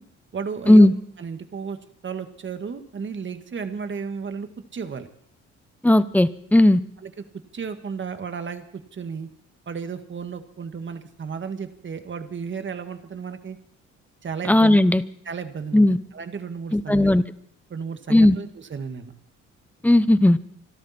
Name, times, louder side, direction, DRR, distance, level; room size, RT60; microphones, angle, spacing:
voice 1, 0.3-0.9 1.2-1.8 2.0-5.1 7.0-7.2 7.5-9.3 9.7-13.6 14.2-14.8 15.3-15.8 16.1-17.1 17.7-19.1, right 6 dB, 40° right, 8 dB, 1.8 m, -33 dB
voice 2, 5.8-6.8 14.5-15.0 15.7-16.0 16.7-17.2 18.1-18.4 19.8-20.4, left 1 dB, 5° left, 15 dB, 0.8 m, -15 dB
26.0 x 12.5 x 4.3 m, 0.66 s
cardioid pair, 90°, 30 cm